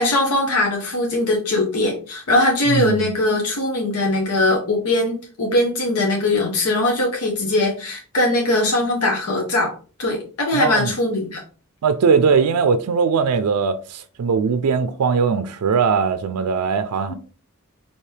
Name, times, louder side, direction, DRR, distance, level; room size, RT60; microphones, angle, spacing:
voice 1, 0.0-9.7 10.0-11.4 17.1-17.2, left 2 dB, 85° left, 0.9 m, -20 dB
voice 2, 2.7-3.2 10.5-10.9 11.8-17.1, right 5 dB, 85° right, 0.4 m, -20 dB
4.6 x 2.8 x 3.2 m
head